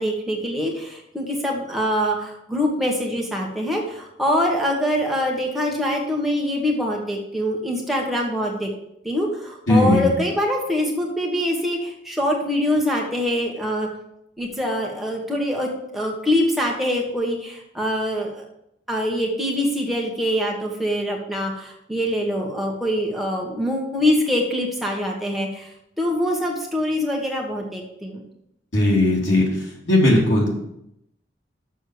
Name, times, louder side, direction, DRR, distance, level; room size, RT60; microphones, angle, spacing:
voice 1, 0.0-8.7 9.0-13.9 14.4-18.3 18.9-25.7 26.0-28.2, equal, ahead, -1 dB, 1.3 m, -24 dB
voice 2, 9.7-10.1 28.7-29.4 29.8-30.5, left 1 dB, 85° left, -3 dB, 3.2 m, -17 dB
6.8 x 6.3 x 6.6 m, 0.78 s
head